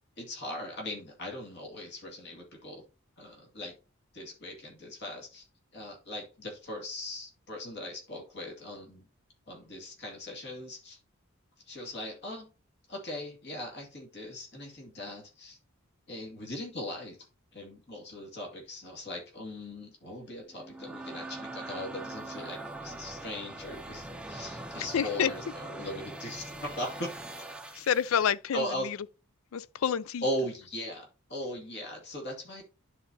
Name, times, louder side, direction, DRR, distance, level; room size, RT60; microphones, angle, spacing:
voice 1, 0.2-2.8 3.2-3.7 4.1-5.5 5.7-9.1 9.5-11.0 11.7-12.5 12.9-15.6 16.1-17.2 17.5-27.2 28.5-28.9 30.2-32.6, left 1 dB, 55° left, 2.2 m, -39 dB
sound 1, 20.5-28.2, right 2 dB, 5° right, 0.5 m, -42 dB
voice 2, 24.8-25.3 27.8-28.6 29.5-30.2, left 8 dB, 75° left, 0.4 m, -28 dB
11.5 x 4.1 x 2.7 m
head